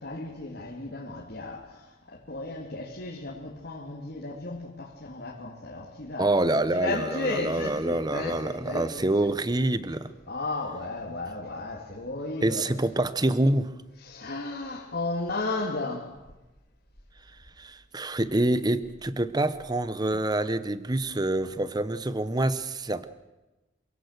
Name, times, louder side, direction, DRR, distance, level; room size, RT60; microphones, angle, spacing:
voice 1, 0.0-6.3 6.7-9.1 10.3-12.7 14.0-16.2, left 2 dB, 55° left, 2.7 m, -34 dB
voice 2, 6.2-10.1 12.4-13.7 17.6-23.1, right 1 dB, 20° right, 0.8 m, -26 dB
27.5 x 17.0 x 6.7 m
head